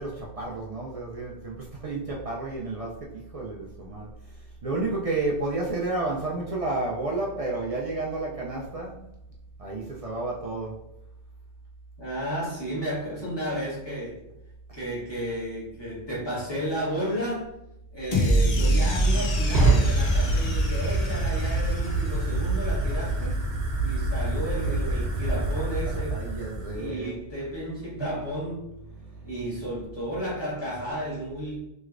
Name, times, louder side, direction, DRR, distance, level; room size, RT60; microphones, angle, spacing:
voice 1, 0.0-4.1 4.6-9.0 9.6-10.8 26.1-27.2 28.0-28.1 28.9-29.3, right 2 dB, 55° right, -3 dB, 0.4 m, -31 dB
voice 2, 12.0-14.2 14.7-17.5 17.9-23.4 23.8-26.2 26.6-28.7 29.2-31.6, equal, 25° left, -8 dB, 1.4 m, -33 dB
Fire, 18.0-26.9, right 2 dB, 85° right, 1.0 m, -26 dB
sound 1, 18.1-22.4, right 1 dB, 45° left, 0.6 m, -25 dB
3.1 x 3.1 x 2.4 m, 0.83 s
omnidirectional pair, 1.0 m